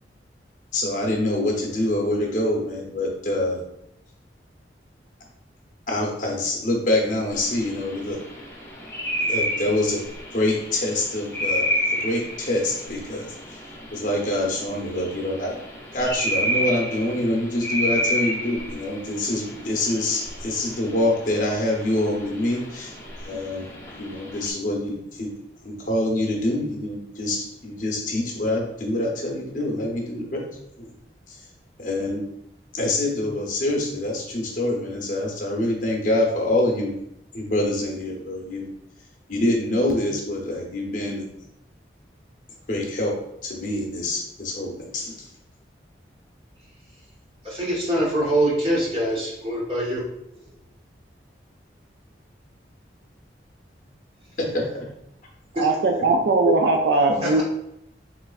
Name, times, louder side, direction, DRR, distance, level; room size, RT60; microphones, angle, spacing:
voice 1, 0.7-3.6 5.9-8.2 9.3-10.0 10.3-11.7 12.0-13.3 13.9-15.6 15.9-22.9 23.2-25.3 25.6-30.4 31.3-31.4 31.8-32.2 32.7-36.9 37.3-38.7 39.3-41.2 42.7-43.1 43.4-45.3 54.4-54.9 56.5-56.6, left 1 dB, 45° left, -1 dB, 0.7 m, -25 dB
sound 1, 7.3-24.5, equal, 15° left, 0.6 m, -31 dB
voice 2, 47.4-50.0 55.5-55.7 57.2-57.4, right 1 dB, 35° right, -5 dB, 1.0 m, -24 dB
voice 3, 55.6-57.4, right 3 dB, 65° right, 3 dB, 0.3 m, -20 dB
3.5 x 3.1 x 2.4 m, 0.79 s
head